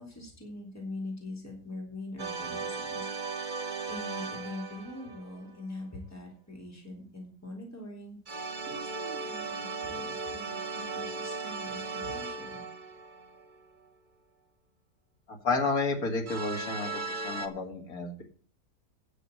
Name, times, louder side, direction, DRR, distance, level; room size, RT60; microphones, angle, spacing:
voice 1, 0.0-3.0 3.3-8.2 8.7-12.6, left 2 dB, 10° left, 0 dB, 3.4 m, -43 dB
sound 1, 2.2-5.5 8.3-13.6 16.3-17.5, right 4 dB, 30° right, 1.3 m, -37 dB
voice 2, 15.3-18.2, left 3 dB, 60° left, 3 dB, 2.7 m, -31 dB
10.0 x 6.7 x 7.7 m, 0.43 s
omnidirectional pair, 1.7 m